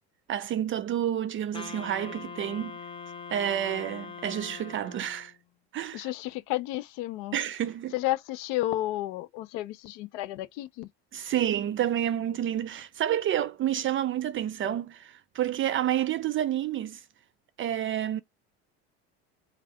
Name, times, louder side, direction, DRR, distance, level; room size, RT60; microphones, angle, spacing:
voice 1, 0.3-2.8 3.3-5.3 5.7-6.1 7.3-7.9 11.1-17.0 17.6-18.2, right 11 dB, 40° right, 0.5 m, -29 dB
Wind instrument woodwind instrument, 1.5-5.4, left 5 dB, 15° left, 0.9 m, -42 dB
voice 2, 5.9-7.4 7.9-10.9, left 15 dB, 75° left, 0.6 m, -32 dB
3.3 x 2.4 x 3.5 m
supercardioid pair, 95°, 31 cm